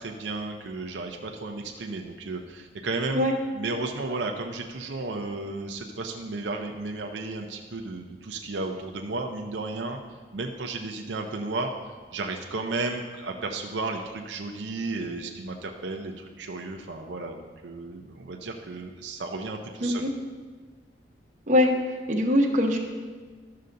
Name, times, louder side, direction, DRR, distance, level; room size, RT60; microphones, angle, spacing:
voice 1, 0.0-3.3 3.5-10.0 10.3-11.7 12.1-20.0, right 3 dB, 85° right, 2 dB, 0.6 m, -33 dB
voice 2, 19.8-20.1 21.5-21.7 22.1-22.8, left 1 dB, 45° right, 0 dB, 1.0 m, -22 dB
12.5 x 6.6 x 2.6 m, 1.4 s
head